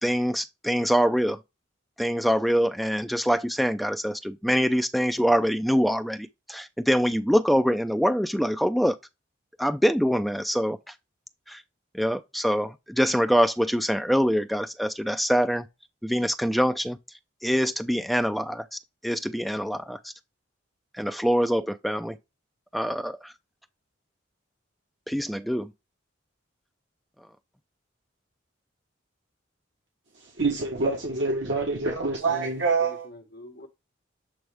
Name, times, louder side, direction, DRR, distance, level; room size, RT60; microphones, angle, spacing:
voice 1, 0.0-1.4 2.0-9.0 9.6-10.9 11.5-11.6 11.9-15.7 16.0-17.0 17.4-20.1 20.9-22.2 22.7-23.3 25.1-25.7, equal, ahead, 0.4 m, -24 dB
voice 2, 30.4-33.1, right 3 dB, 60° right, 1.2 m, -26 dB
voice 3, 32.3-33.7, left 1 dB, 55° left, 1.4 m, -46 dB
7.9 x 3.5 x 3.4 m
head